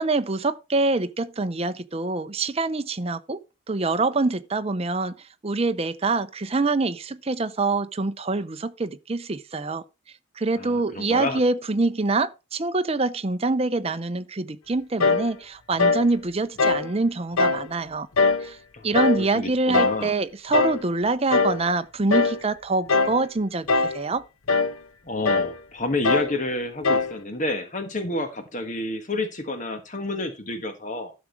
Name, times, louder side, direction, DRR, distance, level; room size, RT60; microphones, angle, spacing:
voice 1, 0.0-3.4 3.7-5.1 5.4-9.8 10.4-18.1 18.4-18.6 18.8-24.2, right 3 dB, 30° right, 0.6 m, -25 dB
voice 2, 10.5-11.4 18.7-19.0 19.3-20.1 25.0-31.1, left 2 dB, 35° left, 1.4 m, -29 dB
sound 1, 15.0-15.3 15.8-16.1 16.6-16.9 17.4-17.7 18.2-18.5 18.9-19.3 19.7-20.0 20.5-20.8 21.3-21.6 22.1-22.4 22.9-23.2 23.7-24.0 24.5-24.7 25.2-25.5 26.0-26.4 26.8-27.1, left 4 dB, 90° left, 0.9 m, -21 dB
12.0 x 6.2 x 4.6 m
head